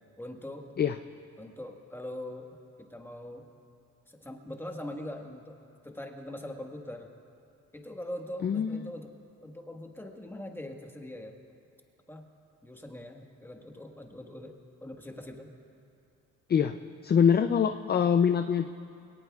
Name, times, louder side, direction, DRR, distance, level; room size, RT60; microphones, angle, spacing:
voice 1, 0.2-0.7 1.4-3.5 4.1-7.1 7.7-9.1 9.4-11.4 12.1-12.3 12.6-14.6 14.8-15.5, left 1 dB, 5° left, 2 dB, 1.5 m, -42 dB
voice 2, 8.4-8.9 16.5-18.7, left 7 dB, 35° left, 9 dB, 0.4 m, -24 dB
22.5 x 18.0 x 2.4 m, 2.6 s
cardioid pair, 90°, 30 cm